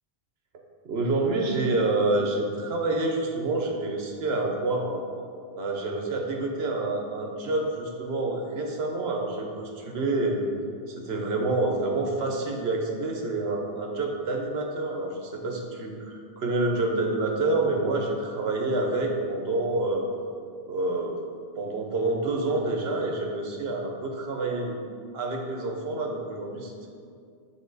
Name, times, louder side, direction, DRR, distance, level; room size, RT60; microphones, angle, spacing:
voice 1, 0.8-5.0 5.6-10.4 10.9-20.1 20.7-21.2 21.6-24.8 25.1-26.9, right 2 dB, 75° right, 1 dB, 1.1 m, -28 dB
8.6 x 3.7 x 4.0 m, 2.3 s
omnidirectional pair, 1.1 m